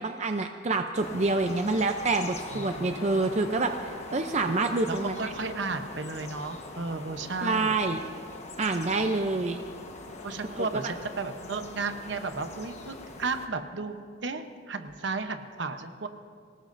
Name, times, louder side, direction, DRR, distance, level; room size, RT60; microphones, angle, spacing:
voice 1, 0.0-3.7 4.1-5.2 7.4-8.0 8.6-9.6 10.5-10.9, right 3 dB, 35° right, 6 dB, 0.5 m, -27 dB
sound 1, 0.9-13.5, left 2 dB, 35° left, 1.2 m, -42 dB
voice 2, 2.5-3.3 4.9-7.8 10.2-16.1, right 3 dB, 65° right, 8 dB, 0.9 m, -34 dB
25.5 x 18.0 x 2.6 m, 2.1 s
head